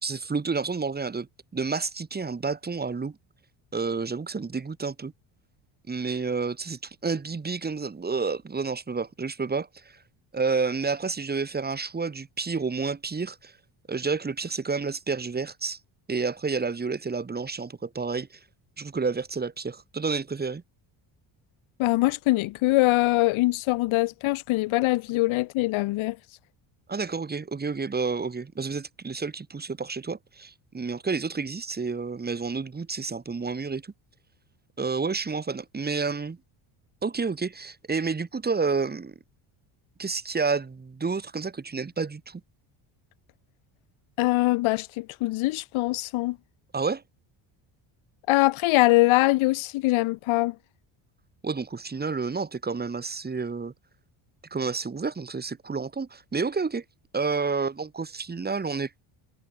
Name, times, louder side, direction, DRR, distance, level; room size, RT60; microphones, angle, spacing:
voice 1, 0.0-3.2 3.7-5.1 5.9-10.0 10.3-13.5 13.9-15.8 16.1-18.4 18.8-20.6 26.9-33.9 34.8-36.4 37.0-39.1 40.0-42.4 46.7-47.0 51.4-53.7 54.5-56.8 57.1-58.9, right 4 dB, 20° right, 2.7 m, -30 dB
voice 2, 21.8-26.2 44.2-46.4 48.3-50.5, left 19 dB, 75° left, 1.8 m, -23 dB
cardioid pair, 120°, 48 cm